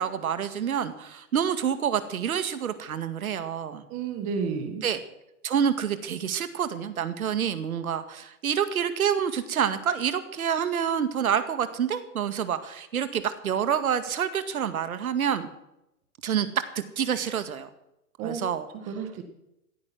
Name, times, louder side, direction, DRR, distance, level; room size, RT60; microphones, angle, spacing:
voice 1, 0.0-3.9 4.8-5.0 5.4-15.5 16.2-16.5 16.8-17.7 18.2-18.7, right 8 dB, 70° right, 11 dB, 2.1 m, -27 dB
voice 2, 3.9-4.8 18.2-18.4 18.9-19.2, right 6 dB, 15° right, 7 dB, 1.6 m, -31 dB
15.5 x 14.5 x 6.2 m, 0.85 s
hypercardioid pair, 170°, 45 cm